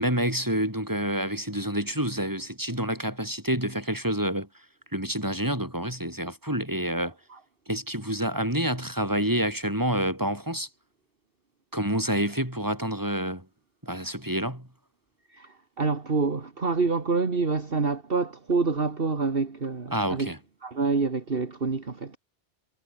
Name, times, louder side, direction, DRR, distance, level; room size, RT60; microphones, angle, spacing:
voice 1, 0.0-4.5 4.9-7.1 7.7-10.7 11.7-13.5 13.8-14.7 19.9-20.4, right 1 dB, 15° right, 6.1 m, -28 dB
voice 2, 15.3-20.3 20.6-22.2, right 4 dB, 50° right, 2.1 m, -27 dB
omnidirectional pair, 1.2 m